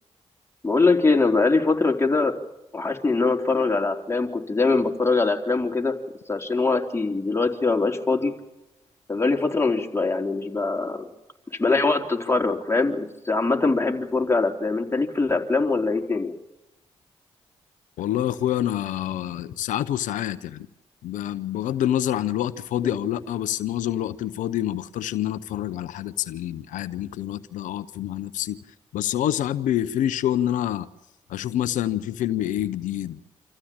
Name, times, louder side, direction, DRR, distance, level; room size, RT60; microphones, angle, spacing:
voice 1, 0.6-2.3 2.7-5.9 6.3-8.3 9.1-11.1 11.6-16.3, left 3 dB, 20° left, 3.8 m, -22 dB
voice 2, 18.0-20.7 21.0-28.6 28.9-30.9 31.3-33.2, left 12 dB, 80° left, 0.7 m, -27 dB
27.5 x 14.5 x 8.7 m
supercardioid pair, 45°, 13 cm